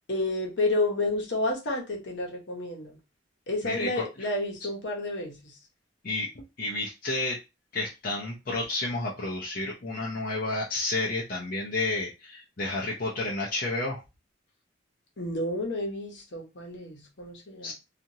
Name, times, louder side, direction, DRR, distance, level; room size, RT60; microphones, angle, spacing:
voice 1, 0.1-3.0 3.5-5.5 15.2-17.7, left 2 dB, 65° left, 1.0 m, -30 dB
voice 2, 3.6-4.3 6.0-7.4 7.7-14.0 17.6-17.7, left 2 dB, 50° left, 0.6 m, -31 dB
2.8 x 2.5 x 2.8 m
head